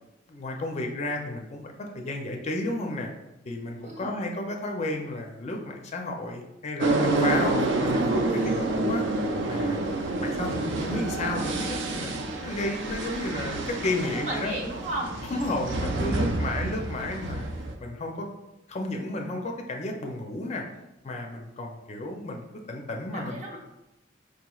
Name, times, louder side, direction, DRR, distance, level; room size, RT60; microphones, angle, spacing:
voice 1, 0.3-3.1 3.5-9.0 9.5-9.8 10.2-14.5 15.3-17.5 17.8-18.3 18.7-20.6 21.0-23.6, left 2 dB, 35° left, 2 dB, 0.4 m, -32 dB
voice 2, 3.8-4.1 7.1-8.4 14.0-15.2 15.9-16.4 23.1-23.6, right 1 dB, 40° right, -3 dB, 0.9 m, -36 dB
sound 1, 6.8-17.7, right 2 dB, 70° right, 0.4 m, -28 dB
4.8 x 2.9 x 2.3 m, 0.95 s
head